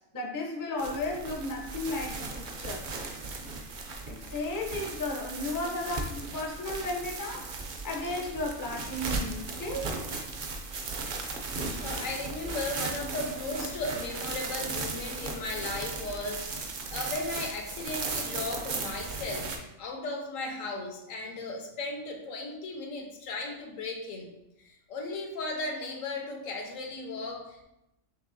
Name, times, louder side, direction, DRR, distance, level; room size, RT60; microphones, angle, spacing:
voice 1, 0.1-2.9 4.1-7.6 7.8-10.0, left 2 dB, 25° left, 0 dB, 0.4 m, -34 dB
sound 1, 0.8-19.6, right 3 dB, 55° right, 0.6 m, -36 dB
voice 2, 11.8-24.3 24.6-27.6, left 2 dB, 75° left, 2 dB, 1.1 m, -36 dB
6.4 x 2.8 x 2.6 m, 0.88 s
omnidirectional pair, 1.4 m